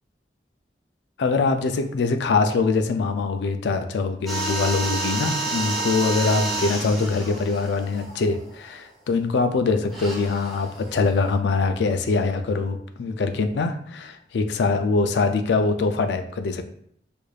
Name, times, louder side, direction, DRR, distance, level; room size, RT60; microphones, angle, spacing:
voice 1, 1.2-16.6, left 4 dB, 75° left, 7 dB, 0.4 m, -23 dB
sound 1, 4.3-8.8 9.9-11.3, right 2 dB, ahead, 0.9 m, -30 dB
4.8 x 2.5 x 2.3 m, 0.66 s
head